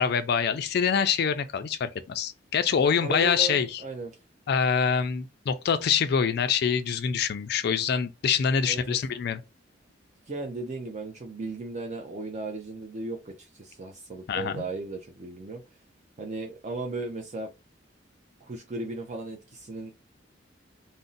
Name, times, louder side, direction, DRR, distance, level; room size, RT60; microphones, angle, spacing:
voice 1, 0.0-3.8 4.5-9.4 14.3-14.6, left 7 dB, 55° left, 0.4 m, -25 dB
voice 2, 3.0-4.1 8.6-9.0 10.3-15.6 16.2-17.5 18.4-19.9, right 2 dB, 40° right, 0.5 m, -36 dB
2.5 x 2.0 x 3.7 m
head